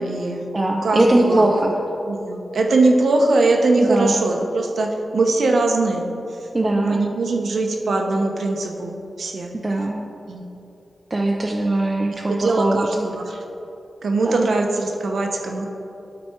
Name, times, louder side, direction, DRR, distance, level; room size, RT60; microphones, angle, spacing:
voice 1, 0.0-0.5 0.8-1.5 2.1-6.1 6.8-9.5 10.3-10.4 12.1-13.4 14.0-15.7, right 2 dB, 80° right, 2 dB, 0.9 m, -21 dB
voice 2, 0.5-1.7 3.8-4.2 6.5-7.0 9.6-10.1 11.1-13.2 14.2-14.5, right 1 dB, 30° right, -1 dB, 0.6 m, -20 dB
12.0 x 4.3 x 4.5 m, 2.8 s
wide cardioid pair, 90°, 0 cm